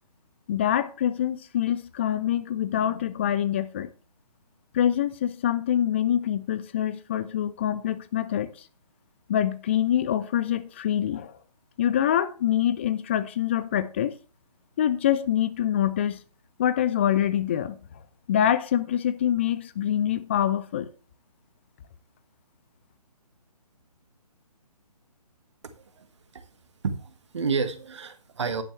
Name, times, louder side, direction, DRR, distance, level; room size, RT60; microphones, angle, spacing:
voice 1, 0.5-3.9 4.7-8.5 9.3-11.3 11.8-14.1 14.8-16.2 16.6-17.8 18.3-20.9, left 10 dB, 20° left, 0.5 m, -25 dB
voice 2, 26.8-28.6, right 5 dB, 45° right, 1.6 m, -30 dB
10.5 x 10.5 x 3.2 m
figure-of-eight pair, 140°, 20 cm